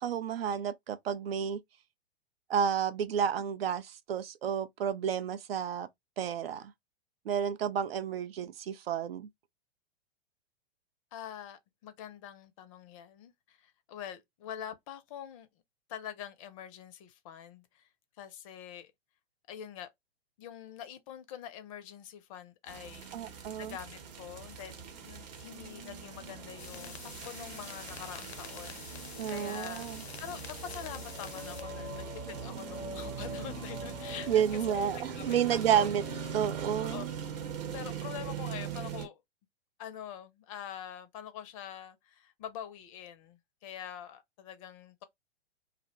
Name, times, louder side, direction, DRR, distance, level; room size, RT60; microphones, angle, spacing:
voice 1, 0.0-1.6 2.5-5.9 6.2-6.7 7.3-9.3 23.1-23.8 29.2-30.0 34.3-36.0 36.3-37.1, right 8 dB, 70° right, 0.5 m, -31 dB
voice 2, 11.1-15.5 15.9-17.9 18.2-18.9 19.5-19.9 20.4-23.1 23.6-24.7 25.0-29.9 30.2-35.9 36.8-37.0 37.7-39.2 39.8-45.0, left 9 dB, 35° left, 0.5 m, -45 dB
sound 1, 22.7-39.1, right 7 dB, 45° right, 0.9 m, -41 dB
sound 2, 24.5-34.8, left 1 dB, 5° right, 0.7 m, -48 dB
sound 3, 26.6-31.6, left 6 dB, 85° left, 0.5 m, -47 dB
2.5 x 2.1 x 2.9 m
figure-of-eight pair, 105°, 31 cm